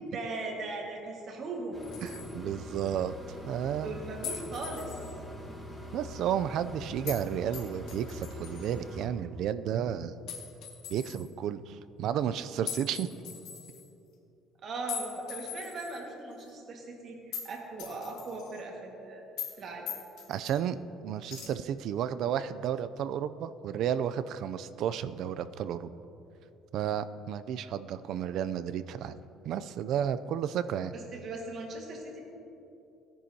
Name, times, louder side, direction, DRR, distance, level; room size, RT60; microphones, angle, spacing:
voice 1, 0.1-1.8 3.8-5.0 14.6-19.2 19.6-19.9 30.9-32.2, right 2 dB, 35° right, 0 dB, 1.6 m, -39 dB
sound 1, 1.7-9.1, equal, ahead, 1.2 m, -43 dB
sound 2, 1.8-2.3 4.2-5.1 7.1-7.2 7.5-8.7 10.3-11.3 12.7-13.9 14.9-16.0 16.4-16.5 17.3-17.5 17.8-18.6 19.4-19.6 19.9-20.5 21.3-21.5, left 8 dB, 75° left, 1.6 m, -41 dB
voice 2, 2.0-3.1 3.5-4.0 5.9-10.1 10.9-13.1 20.3-20.8 21.0-25.9 26.7-29.2 29.4-30.9, right 9 dB, 55° right, 13 dB, 0.3 m, -32 dB
16.5 x 10.0 x 2.8 m, 2.8 s
cardioid pair, 170°, 0 cm